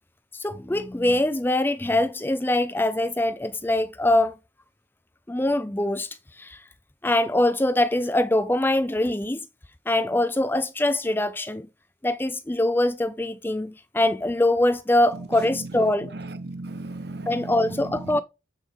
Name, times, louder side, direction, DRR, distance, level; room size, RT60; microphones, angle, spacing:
voice 1, 0.3-4.4 5.3-6.6 7.0-9.5 9.9-11.7 12.0-16.1 17.3-18.2, left 1 dB, 10° left, 0.4 m, -23 dB
voice 2, 16.1-18.2, right 2 dB, 55° right, 1.0 m, -36 dB
8.0 x 7.1 x 3.7 m
head